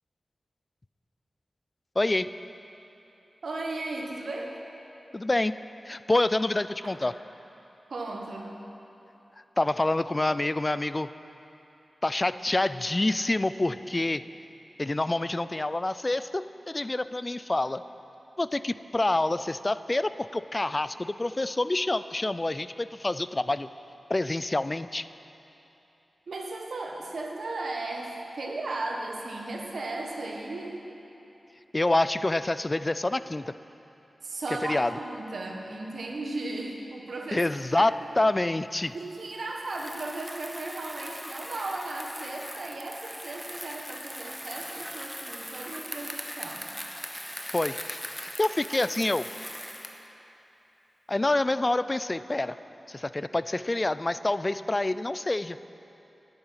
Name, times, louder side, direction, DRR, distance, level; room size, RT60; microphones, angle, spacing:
voice 1, 2.0-2.3 5.1-5.6 5.9-7.1 9.6-11.1 12.0-14.2 14.8-17.8 18.4-23.7 24.1-25.1 31.7-33.4 34.7-34.9 37.3-38.9 47.5-49.2 51.1-52.5 52.9-55.6, left 2 dB, 35° left, 14 dB, 0.3 m, -27 dB
voice 2, 3.4-4.6 6.8-7.1 7.9-8.6 26.3-30.8 34.2-37.5 37.7-38.1 38.9-46.7, right 2 dB, 75° right, 1 dB, 1.2 m, -36 dB
Bicycle, 39.6-50.1, equal, ahead, 1.0 m, -40 dB
11.0 x 8.9 x 5.7 m, 3.0 s
cardioid pair, 40°, 0 cm